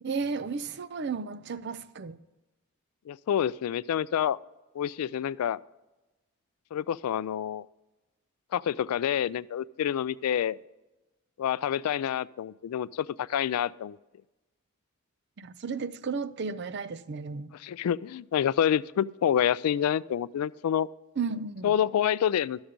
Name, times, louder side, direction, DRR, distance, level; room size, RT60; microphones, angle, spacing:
voice 1, 0.0-2.2 15.4-17.5 21.2-21.7, right 5 dB, 50° right, 0.5 m, -33 dB
voice 2, 3.1-4.4 4.8-5.6 6.7-7.6 8.5-10.6 11.4-14.0 17.6-20.9 21.6-22.6, left 9 dB, 80° left, 0.3 m, -27 dB
11.5 x 7.1 x 5.1 m
head